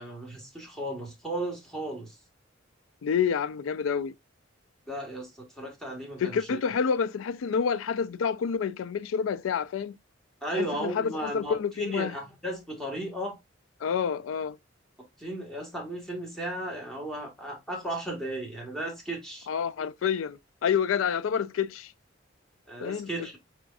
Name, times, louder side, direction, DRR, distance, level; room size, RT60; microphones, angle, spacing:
voice 1, 0.0-2.1 4.9-6.6 10.4-13.4 15.2-19.5 22.7-23.4, right 1 dB, 5° left, 1.6 m, -35 dB
voice 2, 3.0-4.1 6.2-10.0 10.5-12.2 13.8-14.6 19.5-21.9 22.8-23.1, left 7 dB, 80° left, 0.4 m, -28 dB
4.7 x 4.3 x 2.4 m
head